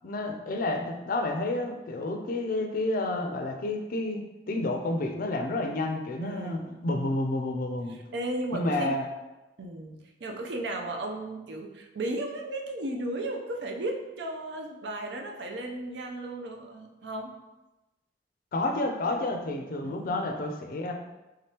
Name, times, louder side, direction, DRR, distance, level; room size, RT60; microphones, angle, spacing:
voice 1, 0.0-8.0 8.5-9.1 18.5-20.9, left 2 dB, 50° left, 4 dB, 0.4 m, -30 dB
voice 2, 6.2-6.9 7.9-9.0 9.6-17.3 19.8-20.3, right 1 dB, 70° right, 2 dB, 0.5 m, -35 dB
3.6 x 3.4 x 2.8 m, 1.0 s
head